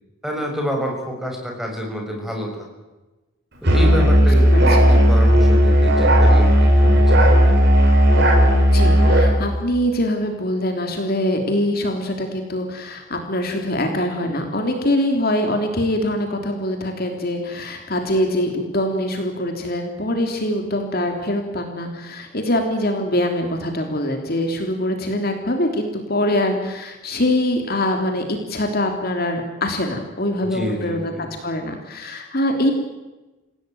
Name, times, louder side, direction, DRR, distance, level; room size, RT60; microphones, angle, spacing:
voice 1, 0.2-2.5 3.6-7.4 30.4-31.3, equal, ahead, 1 dB, 6.5 m, -28 dB
Musical instrument, 3.6-9.4, equal, 50° right, 5.7 m, -14 dB
voice 2, 4.1-4.8 8.7-31.1 31.4-32.7, left 1 dB, 45° left, 4 dB, 3.2 m, -23 dB
29.0 x 17.5 x 9.2 m, 1.1 s
head